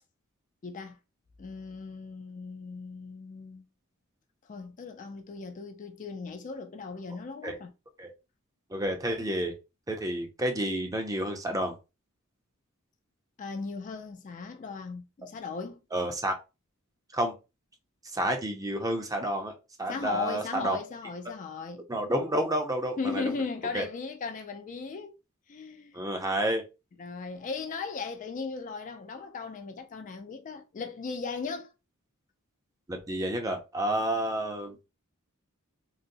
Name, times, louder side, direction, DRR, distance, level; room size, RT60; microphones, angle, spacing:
voice 1, 0.6-1.0 1.4-3.7 4.5-7.7 13.4-15.8 19.9-21.9 23.0-25.2 25.5-26.0 27.0-31.7, left 4 dB, 35° left, 0.4 m, -37 dB
voice 2, 8.7-9.5 9.9-11.8 15.9-16.4 17.1-17.3 18.0-19.5 19.8-20.8 21.9-23.4 23.7-23.8 25.9-26.6 32.9-34.8, right 1 dB, 15° right, 0.5 m, -30 dB
3.9 x 2.0 x 2.6 m
head